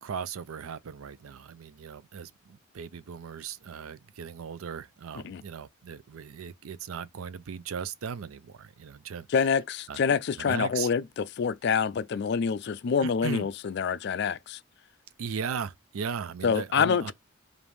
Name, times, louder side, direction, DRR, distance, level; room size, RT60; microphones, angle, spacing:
voice 1, 0.0-9.5 9.9-10.0 10.4-10.9 13.0-13.5 15.2-17.1, right 6 dB, 90° right, 0.4 m, -37 dB
voice 2, 9.3-14.6 16.4-17.1, left 6 dB, 55° left, 0.3 m, -27 dB
5.1 x 2.6 x 3.1 m
head